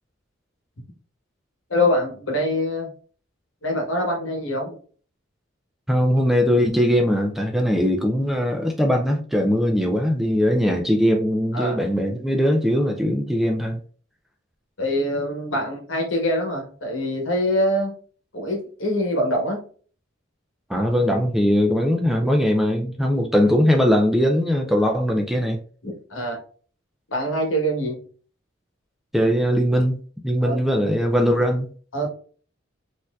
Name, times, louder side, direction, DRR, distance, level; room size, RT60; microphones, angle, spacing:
voice 1, 1.7-2.9 3.6-4.8 11.5-11.8 14.8-18.0 18.3-19.6 25.8-26.4 27.1-28.0 30.4-30.6 31.9-32.1, left 1 dB, 80° left, 1.2 m, -24 dB
voice 2, 5.9-13.8 20.7-25.6 29.1-31.7, equal, ahead, 0.3 m, -20 dB
4.2 x 2.6 x 2.3 m
head